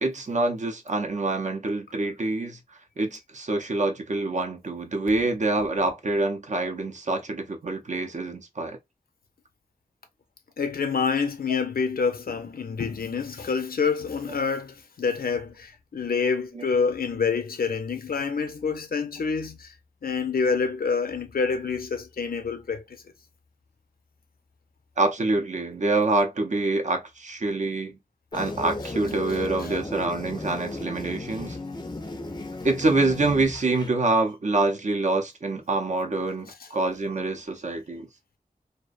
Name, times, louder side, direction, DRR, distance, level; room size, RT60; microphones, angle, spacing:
voice 1, 0.0-2.6 3.0-8.8 11.5-11.6 16.5-16.6 25.0-28.0 28.3-31.6 32.6-38.1, right 2 dB, 55° right, 0.6 m, -26 dB
voice 2, 10.6-19.7 20.0-22.8, left 5 dB, 80° left, 0.5 m, -27 dB
sound 1, 28.3-33.9, left 2 dB, 30° left, 0.4 m, -35 dB
2.4 x 2.1 x 2.4 m
wide cardioid pair, 75°, 15 cm